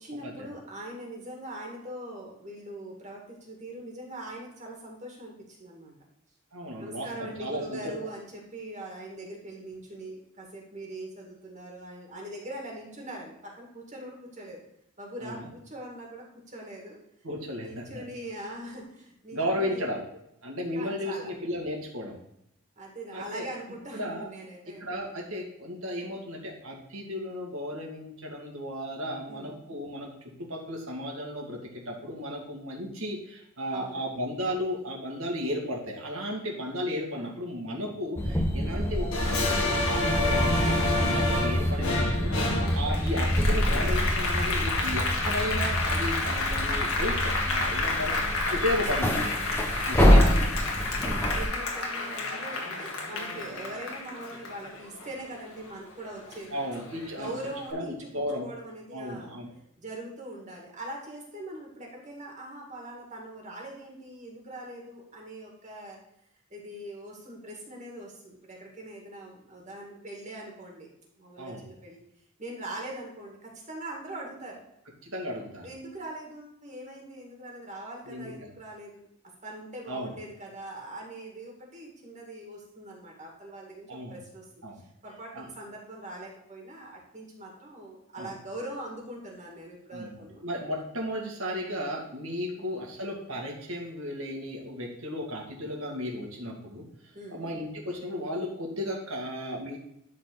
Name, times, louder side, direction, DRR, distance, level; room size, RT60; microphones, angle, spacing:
voice 1, 0.0-6.0 6.8-14.6 15.0-17.0 17.6-20.0 20.7-21.3 22.8-24.9 29.3-29.6 33.7-34.1 37.1-37.4 38.7-39.0 42.6-42.9 50.9-56.6 57.1-58.1 58.4-59.4 59.8-66.0 66.5-70.9 71.2-72.0 72.4-74.6 75.6-79.1 79.4-84.5 85.0-90.4 92.6-92.8 97.1-97.6, right 1 dB, 35° right, -1 dB, 2.1 m, -42 dB
voice 2, 6.5-8.1 15.2-15.5 17.2-18.0 19.3-20.0 20.4-22.2 23.1-23.5 23.9-24.3 24.8-30.1 30.4-49.3 49.9-50.5 56.5-57.3 57.7-58.5 58.9-59.5 71.4-71.6 75.0-75.7 78.1-78.5 79.9-80.1 83.9-84.2 84.6-84.8 85.3-85.5 88.2-88.3 89.9-90.1 90.4-96.8 97.3-99.8, equal, 75° right, -1 dB, 2.2 m, -34 dB
sound 1, 38.2-51.5, equal, 10° left, 1.0 m, -26 dB
Applause, 39.1-55.9 56.3-57.5, left 2 dB, 85° left, 1.8 m, -30 dB
11.5 x 4.2 x 4.0 m, 0.77 s
head